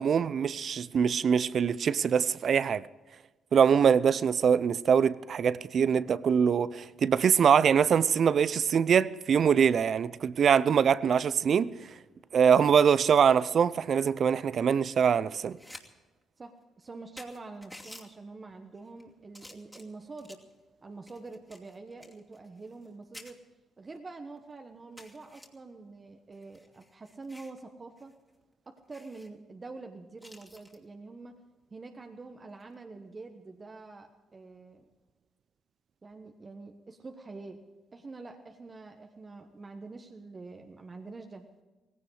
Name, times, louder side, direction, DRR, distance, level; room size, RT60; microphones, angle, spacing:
voice 1, 0.0-2.8 3.5-11.7 12.3-15.6, right 7 dB, 55° right, 0.5 m, -23 dB
sound 1, 15.4-15.9 16.2-16.3 16.8-16.9 17.2-18.1 18.8-19.0 19.3-20.5 21.1-22.9 23.1-23.3 24.0-24.1 24.4-24.5 25.0-25.5 26.3-27.6 28.0-28.1 28.4-28.5 28.9-29.3 30.2-30.8 32.5-32.7, left 1 dB, 10° left, 2.6 m, -51 dB
voice 2, 16.4-20.4 20.8-23.4 23.8-28.1 28.7-31.3 31.7-34.8 36.0-37.6 37.9-41.4, right 3 dB, 35° right, 1.3 m, -46 dB
17.5 x 16.5 x 4.9 m
supercardioid pair, 60°, 0 cm